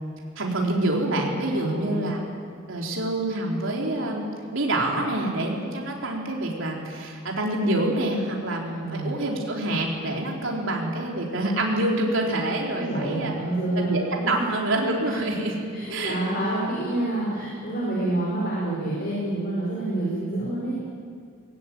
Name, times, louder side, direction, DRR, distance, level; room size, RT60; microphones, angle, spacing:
voice 1, 0.4-2.2 2.7-13.3 13.7-15.5 15.9-16.2 18.0-18.1, right 1 dB, 65° right, -1 dB, 3.9 m, -26 dB
voice 2, 1.5-2.1 8.8-9.2 12.7-13.9 15.1-15.2 15.7-20.8, right 1 dB, 45° left, -5 dB, 4.9 m, -28 dB
20.5 x 16.5 x 9.3 m, 2.2 s
head